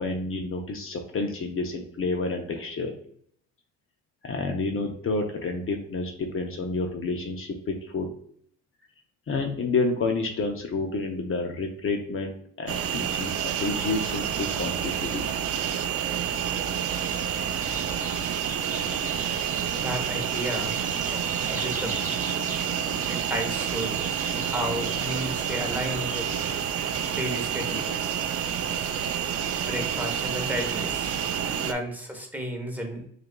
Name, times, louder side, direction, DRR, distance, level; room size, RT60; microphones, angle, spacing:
voice 1, 0.0-2.9 4.2-8.1 9.3-15.2, left 3 dB, 45° left, 3 dB, 0.7 m, -29 dB
sound 1, 12.7-31.7, right 8 dB, 50° right, 0.4 m, -29 dB
sound 2, 16.9-26.6, right 2 dB, 25° right, 1.0 m, -40 dB
voice 2, 19.7-20.8 21.1-22.1 23.1-26.3 27.1-28.2 29.7-31.1 31.6-33.0, equal, 5° right, 2 dB, 1.0 m, -33 dB
6.2 x 2.5 x 2.2 m, 0.65 s
cardioid pair, 90°, 30 cm